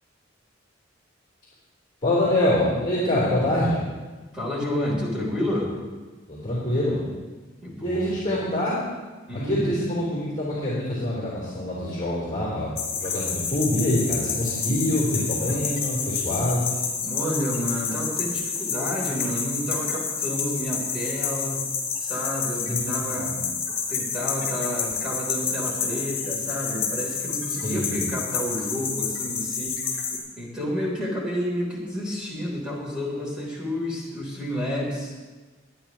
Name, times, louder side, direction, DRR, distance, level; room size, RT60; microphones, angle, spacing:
voice 1, 2.0-3.8 6.3-7.0 7.8-8.8 9.3-16.8 22.7-23.4 27.6-28.0, left 1 dB, 25° left, -8 dB, 3.5 m, -25 dB
voice 2, 4.3-5.7 7.6-8.4 9.3-9.7 17.0-21.6 22.0-23.3 23.9-30.0 30.4-35.1, equal, 5° right, -4 dB, 3.6 m, -30 dB
sound 1, 12.8-30.2, left 6 dB, 55° left, 3.5 m, -29 dB
22.0 x 9.6 x 3.1 m, 1.3 s
head